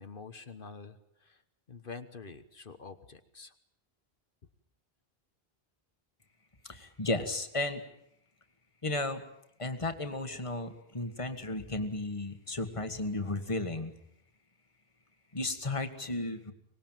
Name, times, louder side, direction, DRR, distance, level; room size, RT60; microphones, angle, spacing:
voice 1, 0.0-1.4 1.7-3.5, left 4 dB, 60° left, 9 dB, 1.3 m, -47 dB
voice 2, 6.7-7.8 8.8-9.2 9.6-13.9 15.3-16.5, left 2 dB, 30° left, 8 dB, 1.8 m, -34 dB
24.5 x 19.5 x 9.1 m, 0.77 s
omnidirectional pair, 1.0 m